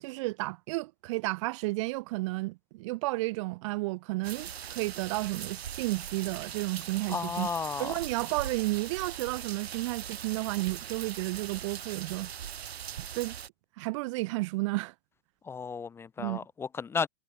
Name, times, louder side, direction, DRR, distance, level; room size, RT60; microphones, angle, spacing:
voice 1, 0.0-7.5 7.8-12.5 13.0-13.4 13.8-14.9 16.2-16.4, right 23 dB, 30° right, 1.1 m, -32 dB
sound 1, 4.2-13.5, right 9 dB, 90° right, 7.1 m, -41 dB
voice 2, 7.1-7.9 15.4-17.1, left 5 dB, 10° left, 1.2 m, -33 dB
hypercardioid pair, 170°, 30 cm